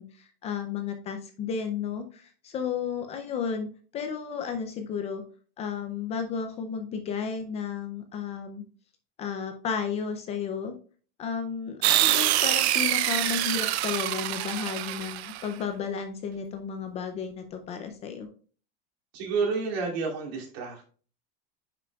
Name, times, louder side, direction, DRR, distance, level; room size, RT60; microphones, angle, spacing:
voice 1, 0.0-3.7 3.9-5.2 5.6-8.6 9.2-10.7 11.2-18.3, left 6 dB, 20° left, 7 dB, 0.4 m, -33 dB
sound 1, 11.8-15.5, right 15 dB, 85° right, 0.6 m, -25 dB
voice 2, 19.1-20.9, right 4 dB, 65° right, 0 dB, 2.5 m, -30 dB
9.1 x 5.9 x 2.3 m, 0.40 s
supercardioid pair, 170°, 32 cm